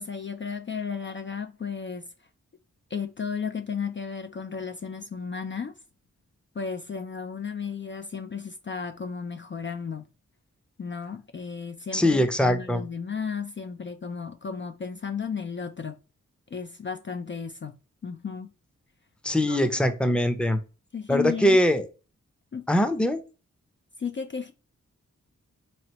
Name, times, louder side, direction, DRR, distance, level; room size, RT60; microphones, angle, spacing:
voice 1, 0.0-2.1 2.9-5.7 6.5-10.1 10.8-16.0 16.5-17.8 18.0-18.5 19.5-19.6 20.9-21.6 22.5-22.8 24.0-24.5, left 6 dB, 40° left, 0.4 m, -34 dB
voice 2, 11.9-12.8 19.2-20.6 21.1-21.9 22.7-23.2, left 1 dB, 5° left, 0.6 m, -22 dB
3.9 x 3.2 x 2.9 m
cardioid pair, 45°, 31 cm